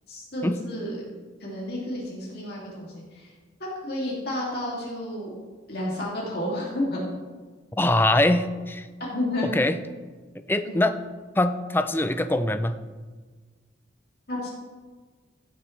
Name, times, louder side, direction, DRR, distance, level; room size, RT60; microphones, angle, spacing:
voice 1, 0.1-1.0 1.4-3.3 3.6-5.3 5.7-7.0 9.1-9.5 10.6-10.8 14.3-14.5, left 1 dB, 55° left, -5 dB, 2.5 m, -31 dB
voice 2, 7.8-8.9 9.4-9.8 10.5-11.0 11.4-12.8, left 1 dB, 10° left, 10 dB, 0.4 m, -23 dB
16.0 x 7.6 x 3.2 m, 1.4 s
head